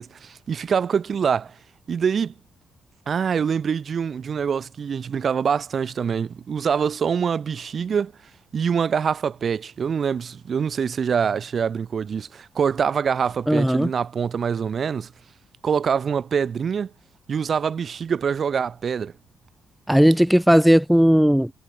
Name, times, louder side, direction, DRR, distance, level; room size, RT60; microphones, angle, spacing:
voice 1, 0.0-1.5 1.9-2.3 3.1-8.1 8.5-15.1 15.6-16.9 17.3-19.1, right 7 dB, 45° right, 4.2 m, -24 dB
voice 2, 13.5-13.9 19.9-21.5, equal, ahead, 0.4 m, -16 dB
cardioid pair, 130°, 0 cm